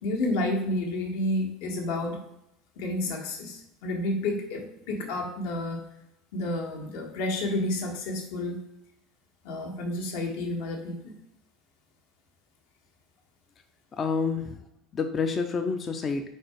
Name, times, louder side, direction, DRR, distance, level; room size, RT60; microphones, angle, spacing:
voice 1, 0.0-2.2 2.8-5.8 6.3-8.6 9.4-11.1, left 1 dB, 80° left, 1 dB, 1.6 m, -30 dB
voice 2, 13.9-14.6 14.9-16.3, left 5 dB, 20° left, 6 dB, 0.3 m, -28 dB
4.7 x 4.4 x 4.4 m, 0.80 s
cardioid pair, 175°, 0 cm